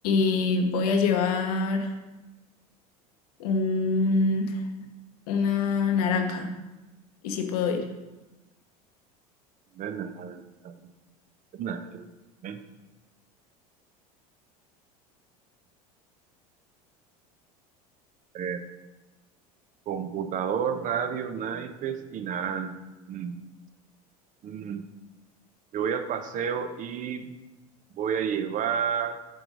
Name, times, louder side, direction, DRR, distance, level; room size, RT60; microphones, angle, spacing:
voice 1, 0.0-1.9 3.4-4.5 5.3-6.5 7.2-7.8, left 4 dB, 75° left, 5 dB, 1.0 m, -24 dB
voice 2, 9.8-10.7 11.5-12.6 18.3-18.6 19.9-22.7 23.1-23.4 24.4-24.8 25.7-27.2 27.9-29.2, right 7 dB, 45° right, 9 dB, 0.7 m, -31 dB
7.8 x 3.9 x 5.0 m, 1.1 s
hypercardioid pair, 80°, 19 cm